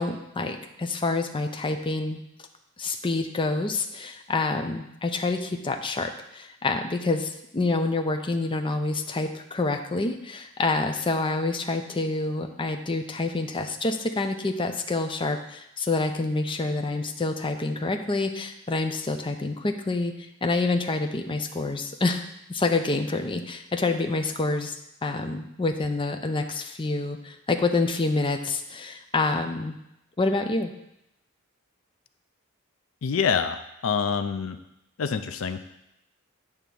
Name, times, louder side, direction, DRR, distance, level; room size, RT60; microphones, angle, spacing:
voice 1, 0.0-2.2 2.8-20.1 20.4-22.2 22.5-24.8 25.0-29.8 30.2-30.7, left 3 dB, 25° left, 5 dB, 0.6 m, -27 dB
voice 2, 33.0-34.6 35.0-35.6, left 6 dB, 75° left, 9 dB, 0.5 m, -26 dB
9.2 x 3.6 x 6.9 m, 0.83 s
head